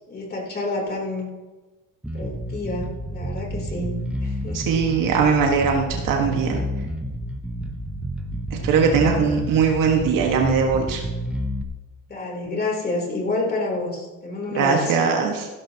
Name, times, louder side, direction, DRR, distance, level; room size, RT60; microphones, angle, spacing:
voice 1, 0.1-1.3 2.1-4.8 9.0-9.4 12.1-15.1, left 2 dB, 25° left, -1 dB, 3.6 m, -29 dB
Bass guitar, 2.0-11.6, equal, 5° right, 1.0 m, -30 dB
voice 2, 4.5-6.6 8.5-11.0 14.5-15.5, right 5 dB, 60° right, 1 dB, 1.7 m, -20 dB
15.5 x 12.0 x 3.0 m, 1.2 s
cardioid pair, 115°, 37 cm